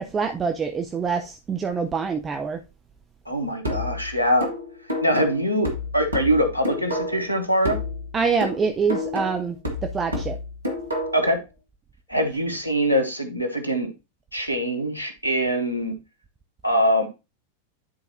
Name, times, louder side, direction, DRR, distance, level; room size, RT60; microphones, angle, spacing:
voice 1, 0.0-2.6 8.1-10.4, right 5 dB, 20° right, 0.5 m, -25 dB
voice 2, 3.3-4.5 5.0-7.8 11.1-11.4 12.1-13.9 14.3-15.9 16.6-17.1, equal, 90° left, 1.1 m, -23 dB
sound 1, 3.6-7.3 7.6-11.3, left 2 dB, 75° right, 1.4 m, -30 dB
10.0 x 4.0 x 2.7 m
figure-of-eight pair, 90°, 0 cm